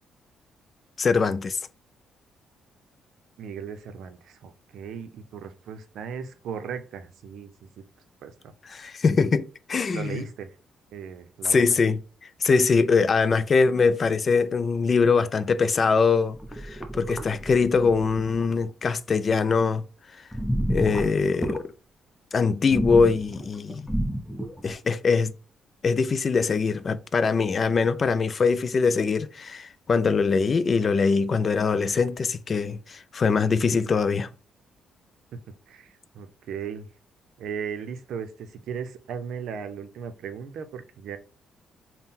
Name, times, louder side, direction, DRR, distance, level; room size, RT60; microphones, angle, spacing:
voice 1, 1.0-1.6 8.7-10.2 11.5-12.0 12.4-16.4 16.6-19.8 20.7-21.7 22.3-23.9 24.6-25.3 25.8-34.3, left 5 dB, 40° left, 0.3 m, -22 dB
voice 2, 3.4-7.8 8.2-8.5 9.9-10.6 10.9-11.8 35.3-35.4 35.7-36.9 37.4-41.2, right 7 dB, 75° right, 0.6 m, -37 dB
sound 1, 16.4-18.6 20.3-21.6 22.7-24.7, equal, 5° left, 0.7 m, -30 dB
3.6 x 2.1 x 4.1 m
cardioid pair, 90°, 0 cm